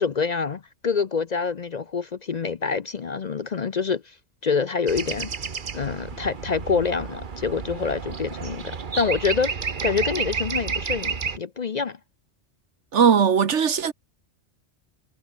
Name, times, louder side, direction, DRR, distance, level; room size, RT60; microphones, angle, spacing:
voice 1, 0.0-4.1 4.4-5.3 5.7-9.5 9.8-12.0, left 5 dB, 45° left, 0.6 m, -26 dB
sound 1, 4.9-11.4, right 5 dB, 45° right, 1.3 m, -31 dB
voice 2, 12.9-13.9, right 7 dB, 80° right, 1.6 m, -19 dB
omnidirectional pair, 1.2 m